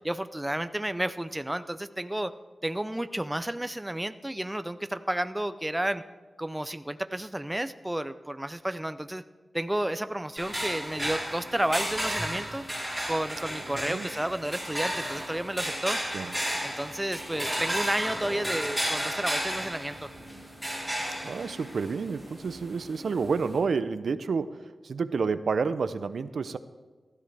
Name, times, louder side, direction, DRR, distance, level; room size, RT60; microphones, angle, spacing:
voice 1, 0.0-2.3 2.6-6.0 6.4-9.2 9.5-12.7 13.1-16.0 16.6-20.1, right 1 dB, 10° right, 11 dB, 0.4 m, -31 dB
sound 1, 10.4-23.6, equal, 10° left, 4.6 m, -33 dB
voice 2, 13.7-14.1 16.1-16.3 21.2-26.6, right 5 dB, 80° right, 13 dB, 0.5 m, -29 dB
15.5 x 12.5 x 3.4 m, 1.3 s
wide cardioid pair, 125°, 0 cm